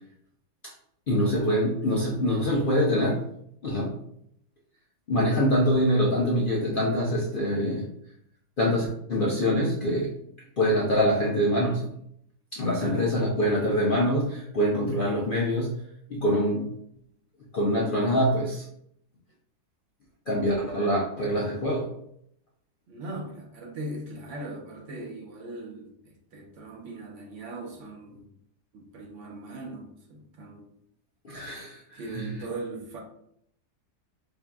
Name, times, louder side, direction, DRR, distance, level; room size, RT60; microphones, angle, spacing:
voice 1, 1.1-3.2 3.6-4.0 5.1-7.9 8.6-10.1 10.6-11.9 12.5-15.7 16.1-16.7 17.5-18.7 20.3-21.9 31.2-32.3, equal, 65° left, -4 dB, 0.5 m, -25 dB
voice 2, 12.8-13.1 22.9-28.3 28.7-30.7 31.9-33.0, right 2 dB, 60° right, 1 dB, 0.9 m, -39 dB
5.2 x 2.7 x 2.3 m, 0.73 s
omnidirectional pair, 1.7 m